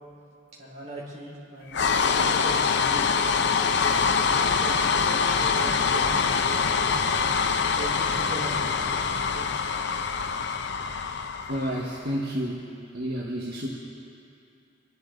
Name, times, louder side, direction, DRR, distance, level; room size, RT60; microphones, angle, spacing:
voice 1, 0.6-7.0 7.7-9.4 9.9-10.1, right 1 dB, 35° right, -6 dB, 4.4 m, -40 dB
sound 1, 1.7-12.0, left 5 dB, 60° left, 0.6 m, -24 dB
voice 2, 11.5-13.7, equal, 55° right, -3 dB, 1.4 m, -30 dB
26.5 x 12.0 x 4.0 m, 2.6 s
head